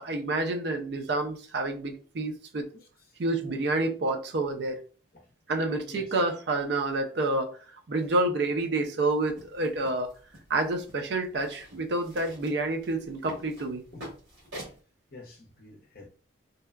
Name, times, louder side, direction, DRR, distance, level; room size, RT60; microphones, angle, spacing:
voice 1, 0.0-2.7 3.2-4.8 5.5-7.5 7.9-10.1 10.5-13.8, right 2 dB, 55° right, 0.4 m, -28 dB
voice 2, 2.8-3.2 5.1-5.3 5.9-6.2 13.9-14.1 15.1-16.1, left 3 dB, 50° left, 0.7 m, -49 dB
sound 1, 9.3-14.8, right 1 dB, 80° right, 1.3 m, -47 dB
2.7 x 2.1 x 2.3 m
head